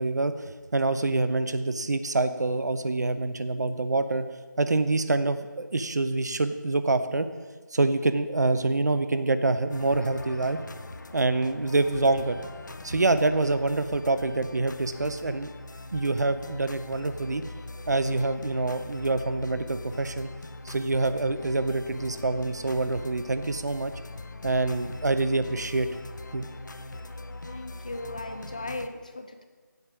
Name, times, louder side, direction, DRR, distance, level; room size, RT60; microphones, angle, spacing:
voice 1, 0.0-4.2 4.6-7.3 7.7-10.6 11.1-12.4 12.8-15.5 15.9-17.4 17.9-20.3 20.6-23.9 24.4-25.9 26.3-26.4, right 2 dB, 60° right, 11 dB, 0.6 m, -26 dB
sound 1, 9.7-28.9, left 2 dB, 70° left, 0.6 m, -42 dB
voice 2, 27.5-29.4, left 2 dB, 25° left, 8 dB, 0.4 m, -37 dB
7.9 x 5.1 x 7.4 m, 1.4 s
figure-of-eight pair, 170°, 10 cm